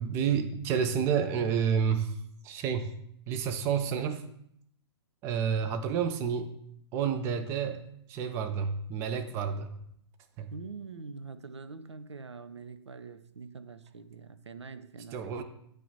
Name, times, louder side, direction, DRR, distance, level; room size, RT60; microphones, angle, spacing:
voice 1, 0.0-2.2 2.4-2.9 3.3-4.2 5.2-6.5 6.9-7.8 8.1-9.8 10.4-10.5 15.1-15.4, right 7 dB, 15° right, 7 dB, 0.4 m, -29 dB
voice 2, 10.5-15.2, right 4 dB, 75° right, 13 dB, 0.5 m, -44 dB
9.1 x 3.2 x 4.0 m, 0.72 s
figure-of-eight pair, 120°, 15 cm